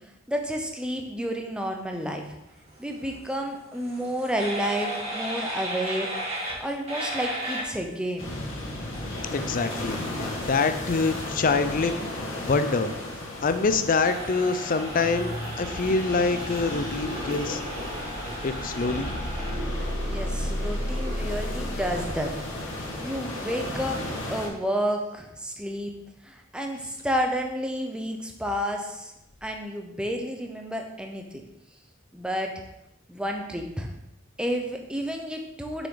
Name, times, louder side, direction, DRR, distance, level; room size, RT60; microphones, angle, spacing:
voice 1, 0.3-2.2 2.8-6.1 6.6-8.4 20.1-22.3 23.0-24.0 24.3-25.9 26.3-29.1 29.4-31.2 32.1-32.5 33.1-33.9 34.4-35.9, equal, 5° right, 2 dB, 0.8 m, -30 dB
sound 1, 2.6-19.5, right 1 dB, 35° right, 2.3 m, -37 dB
sound 2, 8.2-24.5, left 1 dB, 75° left, 1.8 m, -35 dB
voice 2, 9.3-11.9 12.4-12.9 13.4-17.6 18.4-19.1, left 4 dB, 45° left, 10 dB, 0.5 m, -25 dB
sound 3, 15.0-23.0, equal, 85° right, 1.7 m, -34 dB
6.6 x 6.1 x 3.9 m, 0.87 s
head